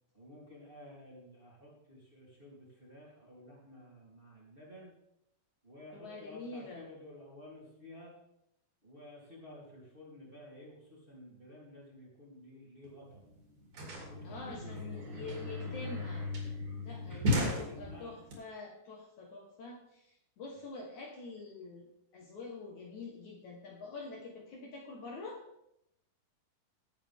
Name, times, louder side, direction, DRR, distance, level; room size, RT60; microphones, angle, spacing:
voice 1, 0.1-4.9 5.6-8.1 8.8-13.2 14.1-16.0 17.0-18.1, left 1 dB, 15° right, -5 dB, 3.0 m, -53 dB
voice 2, 5.9-6.9 14.2-16.3 16.8-25.4, left 3 dB, 60° left, -1 dB, 2.5 m, -46 dB
sound 1, 12.8-12.9 13.1-18.3, left 1 dB, 50° right, 4.4 m, -36 dB
18.5 x 8.5 x 3.6 m, 0.80 s
omnidirectional pair, 4.4 m